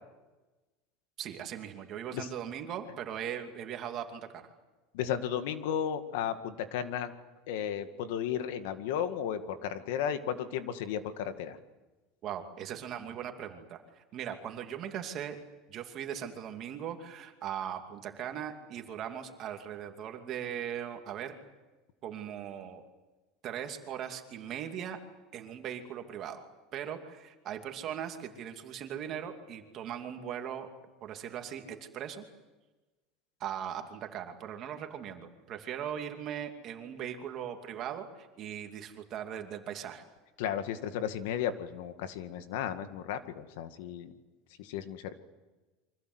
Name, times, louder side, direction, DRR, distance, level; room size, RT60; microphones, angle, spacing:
voice 1, 1.2-4.5 12.2-15.4 15.7-21.3 22.0-22.8 23.4-25.0 25.3-26.4 26.7-30.7 31.0-32.2 33.4-40.0, right 9 dB, 35° right, 5 dB, 2.6 m, -39 dB
voice 2, 4.9-7.1 7.5-11.6 40.4-44.1 44.6-45.2, left 9 dB, 75° left, 9 dB, 2.1 m, -34 dB
29.0 x 24.5 x 8.1 m, 1.2 s
cardioid pair, 170°, 0 cm